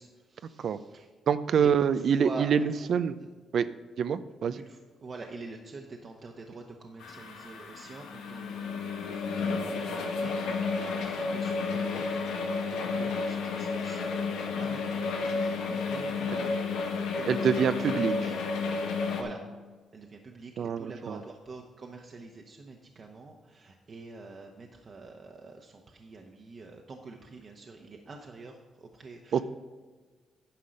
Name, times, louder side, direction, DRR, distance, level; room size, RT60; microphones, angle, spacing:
voice 1, 0.0-1.1 1.6-2.9 3.2-3.3 4.5-18.4 19.1-19.4 19.9-29.4, right 3 dB, 45° right, 1 dB, 1.0 m, -46 dB
voice 2, 1.3-2.6 2.9-3.1 3.5-3.7 4.0-4.6 13.0-13.1 17.3-18.2 20.6-21.2 29.3-29.4, right 7 dB, 65° right, 13 dB, 0.4 m, -25 dB
sound 1, 7.0-19.2, left 4 dB, 90° left, 1.3 m, -31 dB
10.0 x 5.5 x 6.4 m, 1.4 s
cardioid pair, 80°, 0 cm